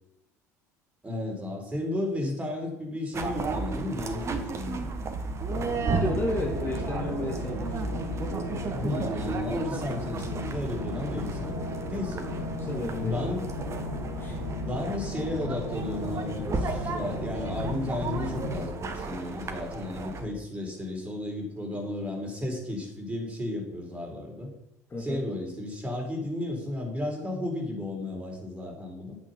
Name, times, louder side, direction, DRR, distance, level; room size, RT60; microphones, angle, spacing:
voice 1, 1.0-4.8 8.7-11.6 11.9-12.3 13.0-13.4 14.6-24.5 25.0-29.2, left 1 dB, 15° right, 0 dB, 4.6 m, -33 dB
sound 1, 3.1-20.2, right 4 dB, 35° right, 1.7 m, -34 dB
sound 2, 5.5-18.6, left 3 dB, 75° left, 2.7 m, -36 dB
voice 2, 5.5-8.0 12.6-13.5 14.2-14.4 24.9-25.3, left 1 dB, 25° left, 0 dB, 2.4 m, -33 dB
10.5 x 8.8 x 5.6 m, 0.81 s
figure-of-eight pair, 65°, 9 cm